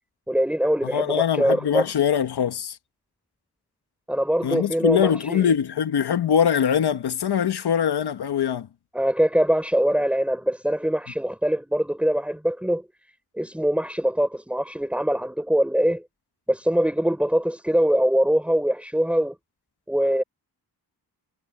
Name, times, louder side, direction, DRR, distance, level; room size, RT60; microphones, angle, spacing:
voice 1, 0.3-1.9 4.1-5.5 8.9-12.9 13.4-16.0 16.5-19.4 19.9-20.2, equal, 5° right, 5.2 m, -23 dB
voice 2, 0.8-2.8 4.4-8.7, left 8 dB, 85° left, 1.3 m, -22 dB
wide cardioid pair, 125°, 38 cm